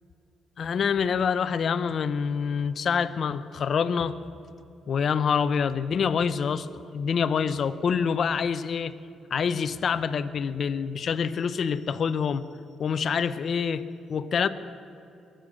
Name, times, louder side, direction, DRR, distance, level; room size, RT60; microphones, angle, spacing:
voice 1, 0.6-4.2 4.9-6.7 6.9-8.9 9.3-12.4 12.8-13.8 14.1-14.5, left 6 dB, 55° left, 12 dB, 0.6 m, -26 dB
22.5 x 7.8 x 6.5 m, 2.7 s
cardioid pair, 90°, 0 cm